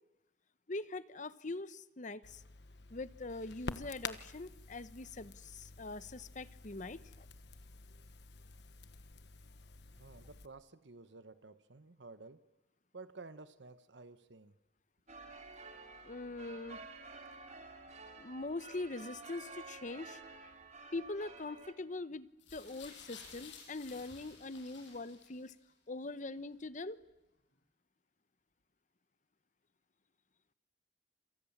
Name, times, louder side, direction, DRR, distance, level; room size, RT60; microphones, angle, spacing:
voice 1, 0.7-2.4 2.9-7.3 16.0-16.8 18.2-20.2 20.9-25.5 25.9-27.0, left 2 dB, 45° left, 14 dB, 0.9 m, -43 dB
Crackle, 2.2-10.5, left 4 dB, 65° left, 1.3 m, -49 dB
voice 2, 10.0-12.4 12.9-14.5, right 3 dB, 80° right, 12 dB, 1.1 m, -53 dB
sound 1, 15.1-21.7, right 3 dB, 40° right, 2.9 m, -51 dB
sound 2, 22.4-25.6 26.5-26.6, left 6 dB, 85° left, 7.1 m, -54 dB
28.0 x 27.5 x 7.3 m, 0.90 s
head